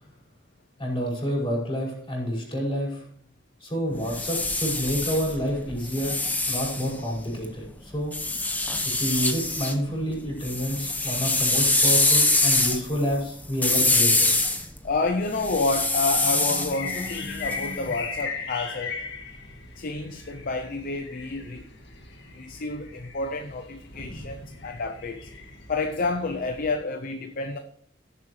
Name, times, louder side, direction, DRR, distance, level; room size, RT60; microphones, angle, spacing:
voice 1, 0.8-3.0 3.6-8.1 8.8-14.3, equal, 25° left, 5.6 m, -28 dB
sound 1, 3.9-7.4 8.1-9.8 10.1-18.0, left 2 dB, 10° left, 1.0 m, -25 dB
voice 2, 14.8-19.0 19.8-21.6 22.3-25.3 25.7-27.6, left 3 dB, 50° left, 0.6 m, -29 dB
sound 2, 16.7-26.7, left 4 dB, 65° left, 1.9 m, -38 dB
17.0 x 7.6 x 3.2 m
head